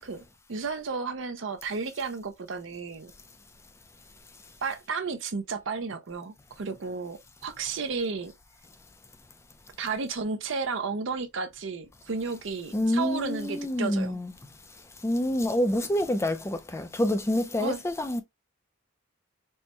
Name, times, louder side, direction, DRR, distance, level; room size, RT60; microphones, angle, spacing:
voice 1, 0.0-3.1 4.6-8.3 9.8-14.2 17.6-17.8, right 4 dB, 65° right, 0.6 m, -33 dB
voice 2, 12.7-14.3 15.0-18.2, left 1 dB, 15° left, 0.4 m, -27 dB
4.4 x 2.1 x 3.1 m
head